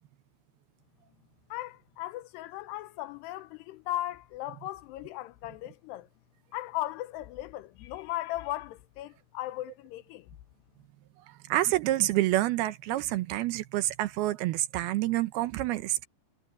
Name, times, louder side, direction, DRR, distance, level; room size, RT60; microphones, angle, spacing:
voice 1, 1.5-6.1 6.5-10.3, left 15 dB, 85° left, 2.8 m, -37 dB
voice 2, 11.3-16.1, right 15 dB, 75° right, 2.7 m, -28 dB
omnidirectional pair, 4.9 m